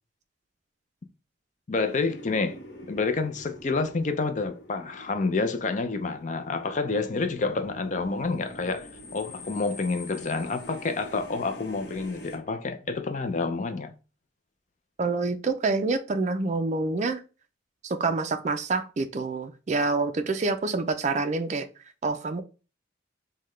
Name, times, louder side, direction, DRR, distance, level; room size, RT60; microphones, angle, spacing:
voice 1, 1.7-2.6 2.9-13.9, left 3 dB, 40° left, 0.4 m, -28 dB
sound 1, 1.8-12.4, left 1 dB, 60° left, 0.9 m, -46 dB
voice 2, 15.0-17.2 17.8-21.7 22.0-22.4, right 3 dB, 40° right, 0.4 m, -27 dB
5.6 x 2.2 x 3.1 m
head